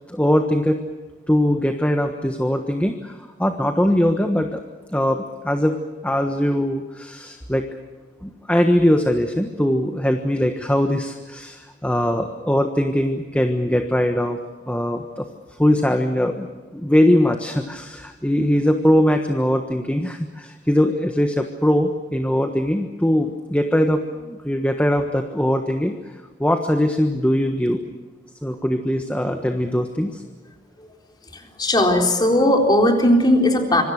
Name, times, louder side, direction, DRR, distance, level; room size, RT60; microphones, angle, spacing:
voice 1, 0.1-0.8 1.3-4.6 4.9-7.7 8.2-14.4 14.7-15.3 15.6-16.5 16.7-25.9 26.4-27.8 28.4-30.2, equal, 5° left, 5 dB, 1.3 m, -21 dB
voice 2, 31.3-33.8, left 1 dB, 25° left, 3 dB, 4.0 m, -17 dB
26.5 x 24.5 x 6.5 m, 1.3 s
head